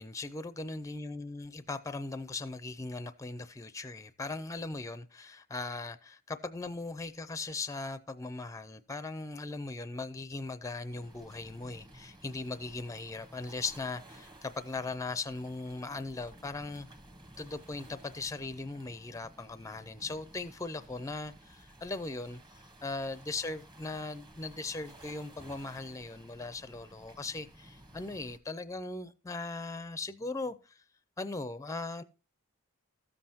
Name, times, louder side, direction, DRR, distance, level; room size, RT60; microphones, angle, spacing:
voice 1, 0.0-16.9 17.4-30.8 31.2-32.0, left 3 dB, 15° left, 0.5 m, -39 dB
sound 1, 10.9-28.4, right 1 dB, 20° right, 1.1 m, -55 dB
13.5 x 7.6 x 2.8 m
head